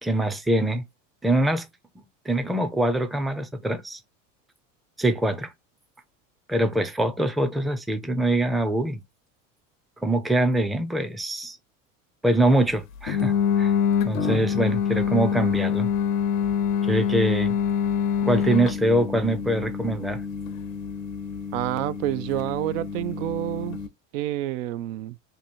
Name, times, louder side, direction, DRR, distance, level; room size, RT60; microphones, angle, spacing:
voice 1, 0.0-0.8 1.2-1.7 2.0-4.0 5.0-5.5 6.5-9.0 10.0-11.6 12.2-13.7 14.1-15.9 16.8-17.6 18.2-20.2, right 1 dB, ahead, 0.4 m, -24 dB
sound 1, 13.1-23.9, left 7 dB, 85° left, 0.7 m, -26 dB
voice 2, 21.5-23.8 24.1-25.2, right 14 dB, 80° right, 0.5 m, -28 dB
2.9 x 2.6 x 4.2 m
hypercardioid pair, 95°, 39 cm